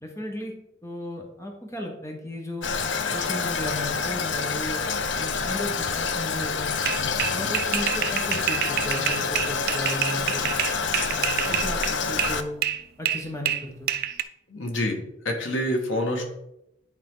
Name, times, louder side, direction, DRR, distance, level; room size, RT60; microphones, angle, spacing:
voice 1, 0.0-2.7 3.1-4.8 5.2-6.7 7.3-10.5 11.1-12.6 13.0-13.9, left 1 dB, 15° left, 2 dB, 1.1 m, -35 dB
Toilet flush, 2.6-12.4, left 5 dB, 70° left, 0.6 m, -27 dB
sound 1, 6.9-12.4 12.6-14.2, right 11 dB, 55° right, 0.5 m, -27 dB
voice 2, 14.5-16.2, left 1 dB, 85° left, 2 dB, 1.6 m, -27 dB
10.0 x 4.6 x 3.8 m, 0.84 s
head